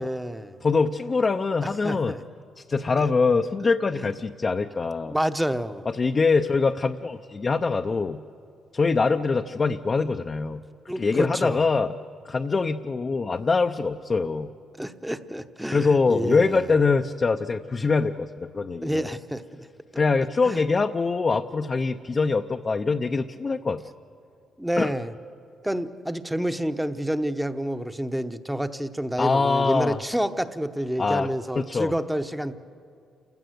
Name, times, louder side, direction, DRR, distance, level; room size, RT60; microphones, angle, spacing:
voice 1, 0.0-0.6 1.8-2.2 3.0-3.1 4.0-4.1 5.1-5.9 10.9-11.6 14.8-16.6 18.8-19.7 20.5-20.6 24.6-25.1 25.6-32.5, equal, 5° right, 10 dB, 0.9 m, -29 dB
voice 2, 0.6-2.1 2.6-5.2 5.9-8.2 8.7-10.6 10.9-11.9 12.2-14.5 15.7-19.1 20.0-23.8 24.8-24.9 29.2-30.0 31.0-31.3 31.5-31.9, left 4 dB, 35° left, 5 dB, 0.6 m, -23 dB
28.5 x 16.0 x 7.9 m, 2.6 s
cardioid pair, 90°, 0 cm